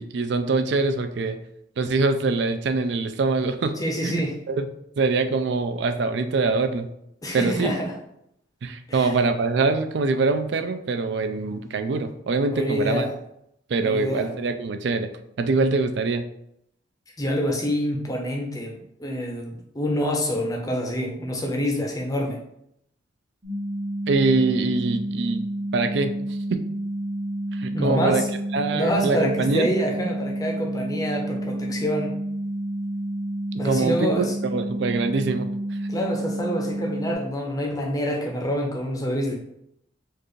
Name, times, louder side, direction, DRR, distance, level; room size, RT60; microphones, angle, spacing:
voice 1, 0.0-1.4 1.8-3.7 4.0-4.7 5.0-6.9 7.3-7.7 8.6-13.0 13.7-15.1 15.4-16.3 24.1-25.5 25.7-26.1 26.5-26.6 27.5-28.2 28.5-29.7 33.6-35.5, right 3 dB, 60° right, 8 dB, 0.4 m, -24 dB
voice 2, 3.8-4.4 7.2-7.9 8.9-9.1 12.5-13.1 13.8-14.3 17.2-22.4 27.7-28.3 28.7-32.1 33.6-34.3 35.9-39.4, equal, 20° left, 0 dB, 0.6 m, -26 dB
sound 1, 23.4-37.1, right 1 dB, 20° right, 0.7 m, -30 dB
4.5 x 2.4 x 3.1 m, 0.76 s
head